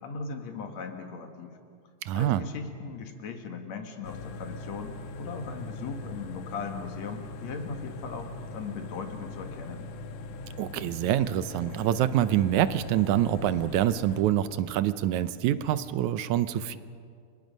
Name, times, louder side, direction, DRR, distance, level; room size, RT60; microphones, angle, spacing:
voice 1, 0.0-1.6 2.1-9.9, left 5 dB, 65° left, 5 dB, 2.8 m, -38 dB
voice 2, 2.1-2.4 10.6-16.8, right 12 dB, 80° right, 13 dB, 2.1 m, -26 dB
sound 1, 4.0-14.2, left 3 dB, 85° left, 2.5 m, -41 dB
30.0 x 24.5 x 5.3 m, 2.3 s
omnidirectional pair, 3.4 m